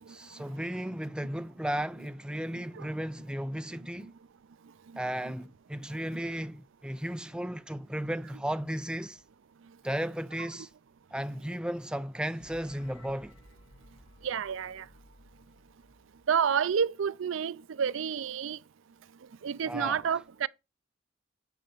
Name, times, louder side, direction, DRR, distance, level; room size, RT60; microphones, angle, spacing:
voice 1, 0.1-4.1 5.0-9.2 9.8-10.7 11.1-13.4 19.7-20.1, right 1 dB, 5° right, 0.4 m, -35 dB
sound 1, 12.2-16.6, left 1 dB, 80° left, 3.8 m, -57 dB
voice 2, 14.2-14.9 16.3-18.6 19.4-20.5, right 7 dB, 70° right, 0.4 m, -29 dB
10.5 x 4.0 x 7.5 m
head